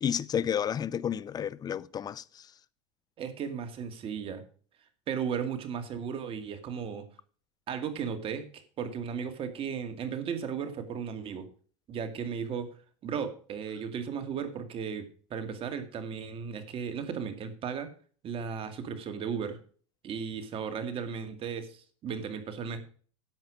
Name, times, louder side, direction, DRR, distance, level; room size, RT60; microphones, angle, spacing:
voice 1, 0.0-2.5, left 8 dB, 25° left, 0.6 m, -31 dB
voice 2, 3.2-4.4 5.1-7.1 7.7-11.5 11.9-12.7 13.0-17.9 18.2-19.6 20.0-22.8, right 7 dB, 40° right, 2.2 m, -35 dB
10.5 x 8.1 x 5.2 m
supercardioid pair, 120°, 15 cm